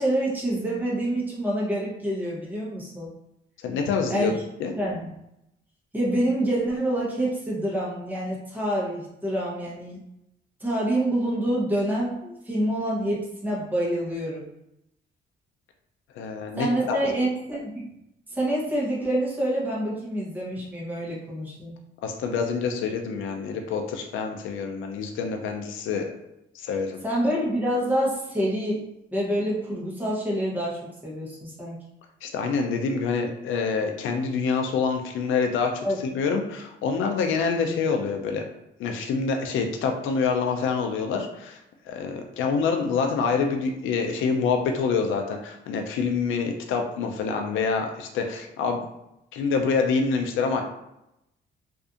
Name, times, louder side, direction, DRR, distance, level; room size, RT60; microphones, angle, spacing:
voice 1, 0.0-3.1 4.1-4.3 4.8-5.1 5.9-10.0 10.6-14.4 16.6-17.9 18.3-21.7 27.0-28.8 29.1-31.8 35.8-36.0, right 1 dB, 10° right, -5 dB, 0.9 m, -27 dB
voice 2, 3.6-4.3 4.6-4.7 16.2-17.0 22.0-26.1 26.5-27.0 32.2-38.4 38.8-41.6 41.9-48.8 49.3-50.6, left 5 dB, 80° left, 4 dB, 0.4 m, -26 dB
2.6 x 2.4 x 2.4 m, 0.85 s
cardioid pair, 90°, 20 cm